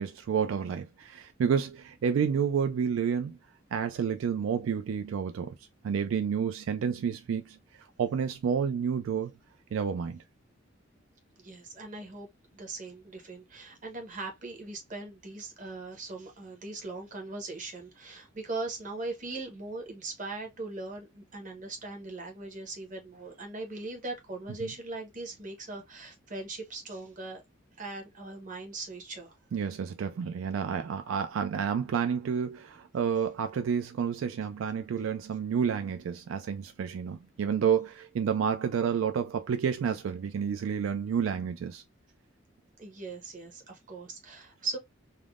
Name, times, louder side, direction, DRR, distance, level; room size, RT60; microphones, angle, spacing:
voice 1, 0.0-3.4 3.7-5.6 5.8-9.3 9.7-10.2 24.6-24.7 29.5-41.8, right 7 dB, 80° right, 0.3 m, -30 dB
voice 2, 11.4-12.3 12.5-27.4 27.8-29.3 42.8-44.8, right 3 dB, 40° right, 1.0 m, -40 dB
3.4 x 2.1 x 2.3 m
head